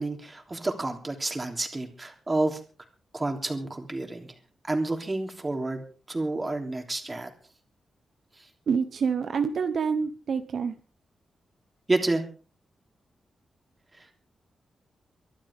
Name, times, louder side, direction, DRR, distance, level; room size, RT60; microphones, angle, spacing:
voice 1, 0.0-2.6 3.1-4.3 4.6-7.3 11.9-12.2 13.9-14.0, right 2 dB, 20° right, 4 dB, 3.2 m, -29 dB
voice 2, 8.7-10.7, right 6 dB, 65° right, 9 dB, 1.1 m, -27 dB
24.5 x 11.5 x 3.7 m, 0.37 s
wide cardioid pair, 115°, 0 cm